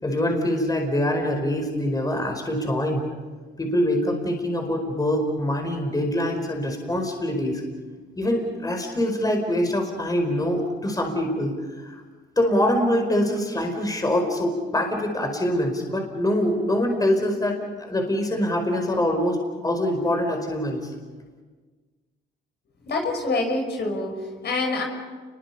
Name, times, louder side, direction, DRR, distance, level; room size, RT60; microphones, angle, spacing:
voice 1, 0.0-3.1 3.6-7.6 8.2-12.0 12.4-17.5 17.8-20.9, left 1 dB, 20° left, 3 dB, 4.7 m, -24 dB
voice 2, 22.8-24.8, left 2 dB, 60° left, 3 dB, 5.6 m, -26 dB
29.5 x 22.5 x 5.6 m, 1.4 s
cardioid pair, 90°, 20 cm